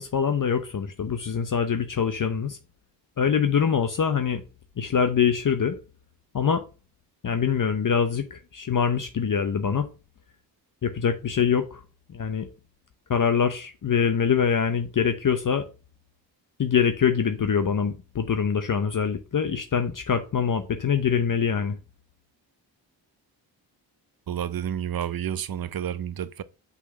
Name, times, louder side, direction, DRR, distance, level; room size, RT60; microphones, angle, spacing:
voice 1, 0.0-2.6 3.2-4.4 4.8-5.8 6.3-6.6 7.2-9.8 10.8-11.8 12.1-12.5 13.1-15.6 16.6-21.8, left 7 dB, 45° left, 0.8 m, -24 dB
voice 2, 24.3-26.4, right 9 dB, 50° right, 0.7 m, -30 dB
5.6 x 4.1 x 5.9 m
cardioid pair, 70°, 45 cm